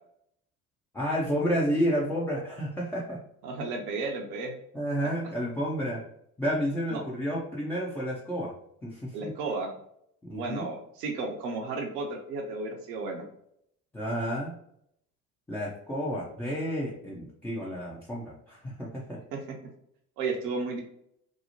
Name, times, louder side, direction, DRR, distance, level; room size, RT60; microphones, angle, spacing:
voice 1, 0.9-3.2 4.7-6.0 6.4-8.5 8.8-9.3 10.2-10.7 13.9-14.5 15.5-19.2, equal, 5° left, -5 dB, 0.3 m, -30 dB
voice 2, 3.4-4.5 5.0-5.1 6.9-7.0 9.1-9.7 10.3-13.2 19.3-19.4 20.2-20.8, right 3 dB, 70° right, 2 dB, 0.7 m, -33 dB
2.8 x 2.0 x 2.7 m, 0.71 s
hypercardioid pair, 65°, 47 cm